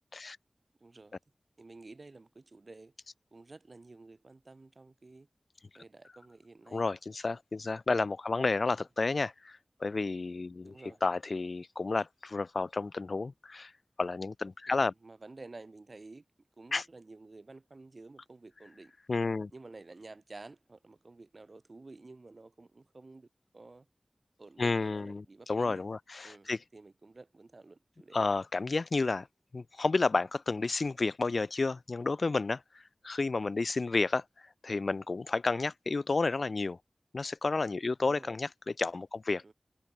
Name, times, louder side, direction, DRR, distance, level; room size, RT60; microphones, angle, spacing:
voice 1, 0.8-1.2 1.6-2.9 3.3-5.3 5.8-6.8 8.6-8.7 10.6-11.0 14.7-16.2 16.6-18.9 19.5-23.3 23.5-23.9 24.4-25.8 26.2-28.4 38.0-38.4 39.4-39.5, right 3 dB, 55° right, 7.1 m, -51 dB
voice 2, 6.7-13.7 14.0-14.9 16.7-16.9 19.1-19.5 24.6-26.6 28.1-29.3 29.5-32.6 33.0-34.2 34.6-36.8 37.1-39.4, left 3 dB, 70° left, 2.5 m, -31 dB
wide cardioid pair, 70°, 0 cm